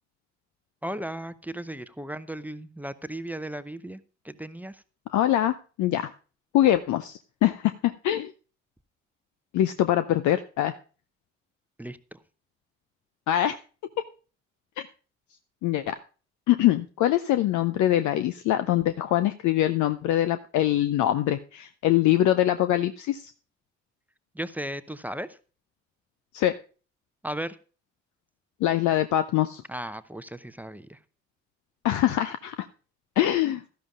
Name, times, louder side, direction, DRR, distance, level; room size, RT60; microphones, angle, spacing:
voice 1, 0.8-4.8 11.8-12.2 24.3-25.4 27.2-27.6 29.7-31.0, right 1 dB, 5° right, 13 dB, 0.6 m, -36 dB
voice 2, 5.1-6.1 6.5-8.3 9.5-10.7 13.3-13.6 14.8-14.9 15.6-16.0 16.5-23.3 26.3-26.5 28.6-29.6 31.8-32.7 33.2-33.6, left 13 dB, 55° left, 11 dB, 0.6 m, -23 dB
16.5 x 12.5 x 2.4 m, 0.37 s
figure-of-eight pair, 45°, 35 cm